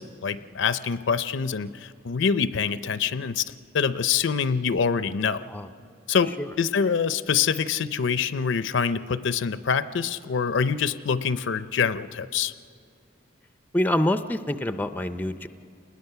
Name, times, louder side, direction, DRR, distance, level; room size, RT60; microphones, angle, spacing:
voice 1, 0.0-3.4 3.7-5.5 6.1-12.5, left 6 dB, 65° left, 14 dB, 0.5 m, -25 dB
voice 2, 13.7-15.5, left 1 dB, 10° left, 10 dB, 0.4 m, -26 dB
29.5 x 20.0 x 5.7 m, 2.4 s
head